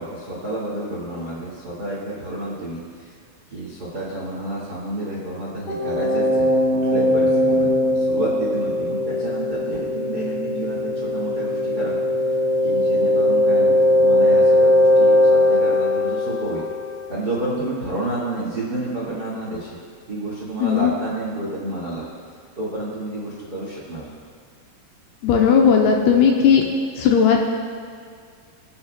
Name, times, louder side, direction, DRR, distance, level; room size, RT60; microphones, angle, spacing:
voice 1, 0.0-3.1 3.5-6.5 6.8-11.9 12.6-16.6 17.1-19.8 20.1-22.0 22.5-24.1, right 1 dB, 65° right, -6 dB, 0.9 m, -30 dB
sound 1, 5.7-17.3, left 1 dB, 50° left, 2.1 m, -19 dB
voice 2, 20.6-20.9 25.2-26.6 27.0-27.4, left 7 dB, 80° left, 0 dB, 2.5 m, -16 dB
26.0 x 8.7 x 2.2 m, 2.1 s
omnidirectional pair, 5.1 m